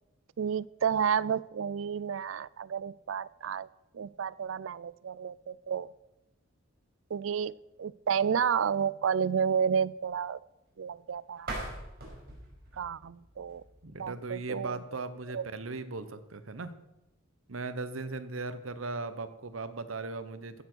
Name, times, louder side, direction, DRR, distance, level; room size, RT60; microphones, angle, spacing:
voice 1, 0.4-3.7 3.9-5.9 7.1-7.5 7.8-10.4 10.8-11.5 12.8-13.6 14.0-14.8 15.3-15.5, right 7 dB, 70° right, 21 dB, 0.4 m, -31 dB
sound 1, 11.4-14.2, right 2 dB, 50° right, 5.0 m, -42 dB
voice 2, 13.8-16.8 17.5-20.6, right 3 dB, 90° right, 11 dB, 1.0 m, -38 dB
15.5 x 7.0 x 6.2 m, 0.95 s
head